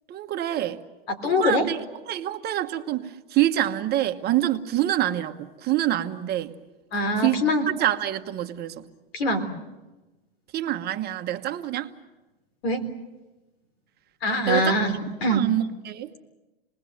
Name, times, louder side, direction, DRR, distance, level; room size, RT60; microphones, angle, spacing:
voice 1, 0.1-0.8 1.2-1.8 2.1-6.5 7.2-7.4 7.8-8.8 10.5-11.9 14.5-14.9 15.3-16.1, right 13 dB, 30° right, 1.2 m, -26 dB
voice 2, 1.1-1.7 6.9-7.7 9.1-9.5 12.6-12.8 14.2-15.4, left 1 dB, 75° left, 4.0 m, -23 dB
27.5 x 20.0 x 7.8 m
hypercardioid pair, 115°, 30 cm